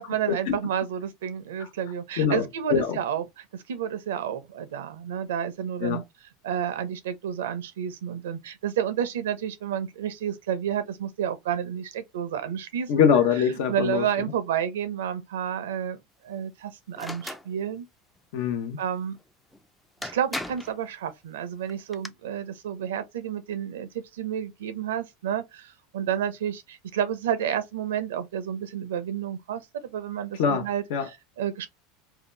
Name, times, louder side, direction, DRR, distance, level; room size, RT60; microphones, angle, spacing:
voice 1, 0.0-6.0 6.4-13.0 13.7-17.9 18.8-19.2 20.0-31.7, right 9 dB, 90° right, 0.6 m, -30 dB
voice 2, 2.2-3.0 5.8-6.0 12.9-14.1 18.3-18.8 30.4-31.1, left 7 dB, 70° left, 0.7 m, -23 dB
sound 1, 17.0-17.5 19.5-19.6 20.0-20.8 21.7-22.1, left 1 dB, 5° left, 0.3 m, -35 dB
2.7 x 2.3 x 3.2 m
supercardioid pair, 115°, 0 cm